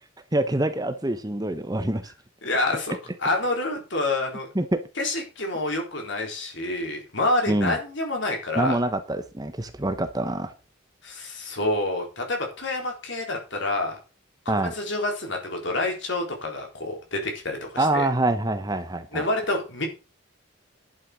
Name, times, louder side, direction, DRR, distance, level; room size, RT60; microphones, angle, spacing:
voice 1, 0.3-2.1 4.5-4.7 7.5-7.8 8.6-10.5 14.5-14.7 17.8-19.2, right 1 dB, 20° right, 9 dB, 0.9 m, -25 dB
voice 2, 2.4-4.5 5.0-8.8 11.0-14.0 14.5-18.1 19.1-19.9, left 2 dB, 60° left, 2 dB, 3.9 m, -28 dB
11.5 x 6.7 x 6.2 m, 0.32 s
head